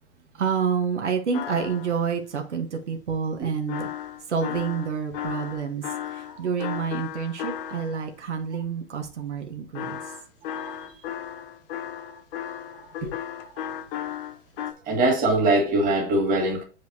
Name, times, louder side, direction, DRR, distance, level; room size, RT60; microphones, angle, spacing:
voice 1, 0.3-3.9 4.3-5.8 6.1-10.0, right 6 dB, 85° right, 1.4 m, -28 dB
sound 1, 1.3-2.0 3.7-8.1 9.8-14.7, left 10 dB, 50° left, 0.9 m, -35 dB
voice 2, 10.5-10.9 13.0-13.1 14.9-16.6, right 2 dB, 25° right, 1.9 m, -22 dB
8.0 x 5.0 x 2.8 m
hypercardioid pair, 125°, 34 cm